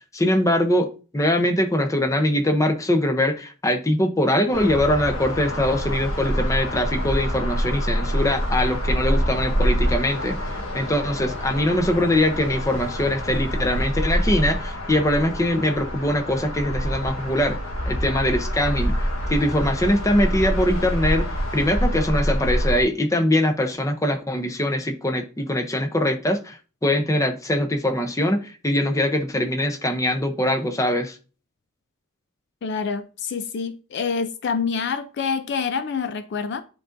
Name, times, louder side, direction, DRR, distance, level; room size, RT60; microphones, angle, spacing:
voice 1, 0.1-17.6 17.9-31.2, left 1 dB, 15° left, 0.6 m, -22 dB
sound 1, 4.5-22.8, equal, 85° left, 1.2 m, -26 dB
voice 2, 32.6-36.6, left 5 dB, 55° left, 0.4 m, -27 dB
10.5 x 3.8 x 2.6 m
head